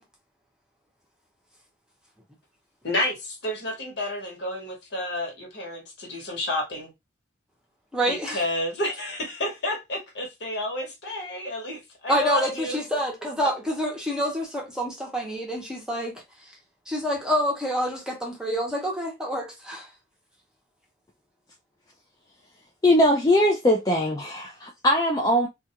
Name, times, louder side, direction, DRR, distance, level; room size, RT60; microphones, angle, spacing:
voice 1, 2.8-6.9 8.1-12.8, left 1 dB, 65° left, 1.1 m, -30 dB
voice 2, 7.9-8.4 12.1-16.2 16.9-19.9, equal, 5° right, 0.7 m, -27 dB
voice 3, 22.8-25.5, left 1 dB, 20° left, 0.3 m, -21 dB
2.3 x 2.3 x 2.8 m
head